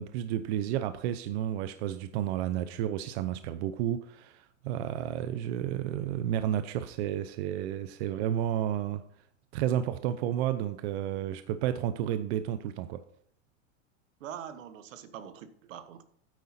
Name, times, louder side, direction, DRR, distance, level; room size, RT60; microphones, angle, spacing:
voice 1, 0.0-9.0 9.5-13.0, right 11 dB, 55° right, 0.7 m, -31 dB
voice 2, 14.2-16.0, right 9 dB, 80° right, 1.2 m, -43 dB
9.1 x 8.2 x 4.2 m
supercardioid pair, 140°, 38 cm